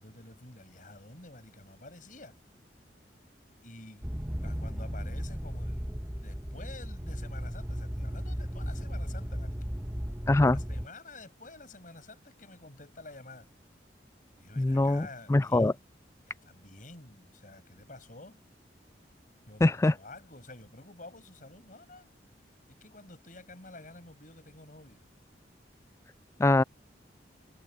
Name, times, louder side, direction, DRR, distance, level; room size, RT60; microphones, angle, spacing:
voice 1, 0.0-2.4 3.6-4.1 4.4-5.9 6.2-9.7 10.5-13.5 14.4-15.8 16.3-18.4 19.5-22.1 22.7-25.1, left 2 dB, 50° left, 6.7 m, -50 dB
sound 1, 4.0-10.9, equal, 10° right, 1.6 m, -35 dB
voice 2, 10.3-10.6 14.6-15.7 19.6-19.9 26.4-26.6, left 2 dB, 15° left, 0.3 m, -23 dB
head